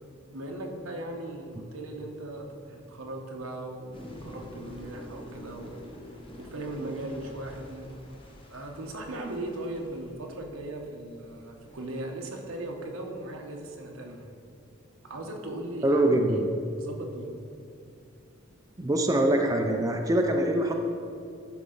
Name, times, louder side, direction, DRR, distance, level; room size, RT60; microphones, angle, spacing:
voice 1, 0.3-5.7 6.4-7.9 8.5-14.4 15.0-16.4 16.8-17.3, right 1 dB, 85° right, 2 dB, 1.0 m, -38 dB
sound 1, 3.9-12.0, left 1 dB, 25° left, 0.9 m, -47 dB
voice 2, 15.8-16.5 18.8-20.7, right 1 dB, 15° right, 3 dB, 0.4 m, -24 dB
11.5 x 4.7 x 3.9 m, 2.5 s
head